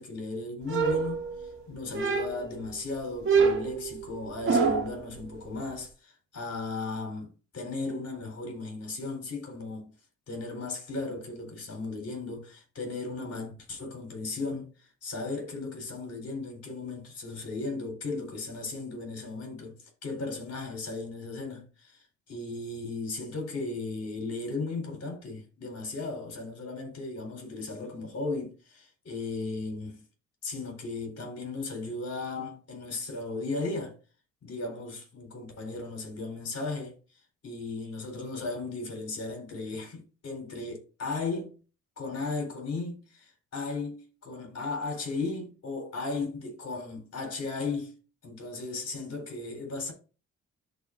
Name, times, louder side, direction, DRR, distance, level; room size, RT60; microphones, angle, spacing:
voice 1, 0.0-9.9 10.3-30.0 30.4-34.0 34.4-41.6 42.0-47.9 48.2-49.9, left 3 dB, 55° left, 4.1 m, -36 dB
sound 1, 0.7-1.5 1.9-2.6 3.2-5.0, right 5 dB, 40° right, 1.9 m, -26 dB
13.0 x 4.5 x 2.6 m
cardioid pair, 90°, 30 cm